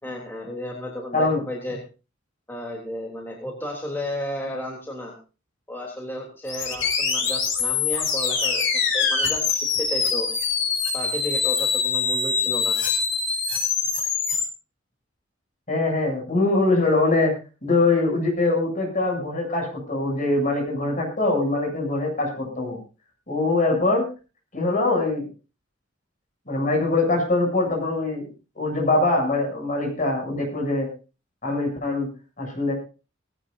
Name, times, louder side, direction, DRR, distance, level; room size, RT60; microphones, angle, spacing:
voice 1, 0.0-1.8 2.5-5.2 5.7-10.3 10.9-12.8, left 1 dB, 10° left, -1 dB, 3.4 m, -33 dB
sound 1, 6.5-14.4, left 5 dB, 70° left, 5.4 m, -24 dB
voice 2, 15.7-17.3 17.6-22.8 23.3-24.1 24.5-25.3 26.5-28.2 28.6-30.9 31.4-32.1 32.4-32.7, left 2 dB, 40° left, 1 dB, 7.9 m, -23 dB
19.5 x 17.0 x 2.7 m, 0.33 s
head